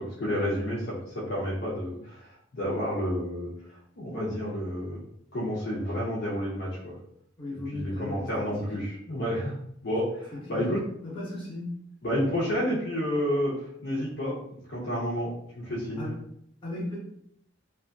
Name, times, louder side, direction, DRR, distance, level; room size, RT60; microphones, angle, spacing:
voice 1, 0.0-3.5 4.0-5.0 5.3-6.9 7.7-9.6 9.8-10.8 12.0-16.1, equal, 55° left, -6 dB, 0.6 m, -30 dB
voice 2, 7.4-8.5 10.3-10.7 11.0-11.8 16.0-16.2 16.6-17.0, left 1 dB, 30° left, -7 dB, 1.0 m, -36 dB
2.6 x 2.5 x 2.3 m, 0.72 s
head